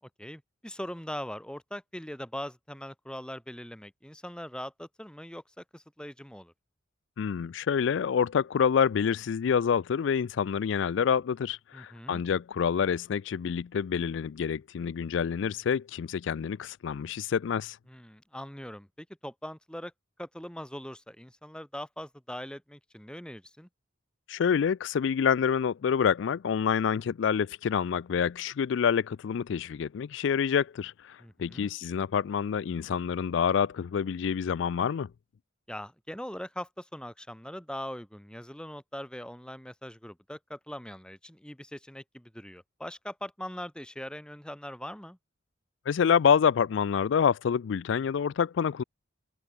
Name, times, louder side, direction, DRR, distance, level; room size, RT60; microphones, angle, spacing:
voice 1, 0.2-6.5 11.7-12.2 17.9-19.9 20.2-23.7 31.2-31.7 35.7-45.2, equal, 5° left, 2.3 m, -41 dB
voice 2, 7.2-17.8 24.3-35.1 45.9-48.8, left 7 dB, 65° left, 0.3 m, -27 dB
head